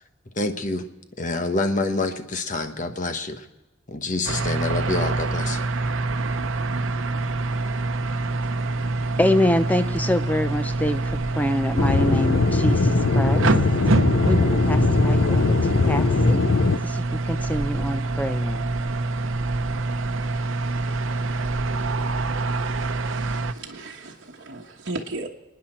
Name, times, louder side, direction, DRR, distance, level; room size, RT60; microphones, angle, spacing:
voice 1, 0.4-0.8 1.2-3.4 3.9-5.6, left 2 dB, 40° left, 7 dB, 1.1 m, -27 dB
Jingling keys and locking doors in a sketchy neighborhood, 4.3-23.5, right 2 dB, 90° right, 0.8 m, -26 dB
voice 2, 9.2-13.5 14.3-15.6 15.9-16.4 16.8-18.7, left 1 dB, 10° left, 9 dB, 0.7 m, -25 dB
Aircraft / Engine, 11.8-16.8, left 3 dB, 75° left, 0.7 m, -20 dB
voice 3, 22.5-25.3, right 2 dB, 60° right, -3 dB, 1.2 m, -36 dB
27.5 x 9.8 x 4.4 m, 1.1 s
head